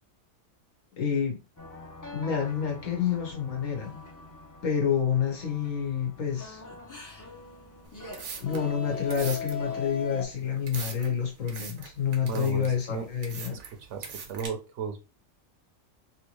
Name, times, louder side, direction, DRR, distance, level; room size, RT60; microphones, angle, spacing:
voice 1, 1.0-1.4 2.1-4.1 4.6-6.6 8.4-13.6, left 7 dB, 75° left, 1.5 m, -28 dB
sound 1, 1.6-10.2, left 4 dB, 20° left, 0.6 m, -41 dB
sound 2, 7.8-14.5, right 5 dB, 85° right, 1.3 m, -42 dB
voice 2, 12.2-13.1 13.5-15.0, right 6 dB, 65° right, 0.9 m, -35 dB
3.3 x 2.8 x 3.0 m
omnidirectional pair, 1.4 m